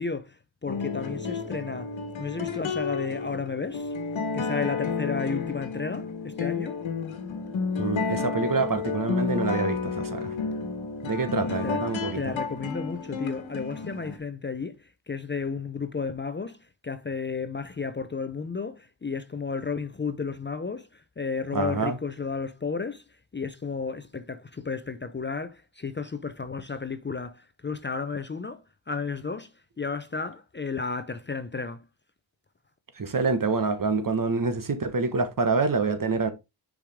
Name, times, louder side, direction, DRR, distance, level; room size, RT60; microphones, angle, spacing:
voice 1, 0.0-1.9 2.2-3.9 4.3-6.8 11.4-11.8 12.1-23.0 23.3-31.9, left 5 dB, 25° left, 0.6 m, -33 dB
sound 1, 0.7-14.2, left 5 dB, 80° left, 1.4 m, -31 dB
voice 2, 7.8-10.3 11.0-12.2 21.5-22.0 33.0-36.3, right 4 dB, 45° right, 1.4 m, -26 dB
6.7 x 5.1 x 3.5 m
cardioid pair, 75°, 46 cm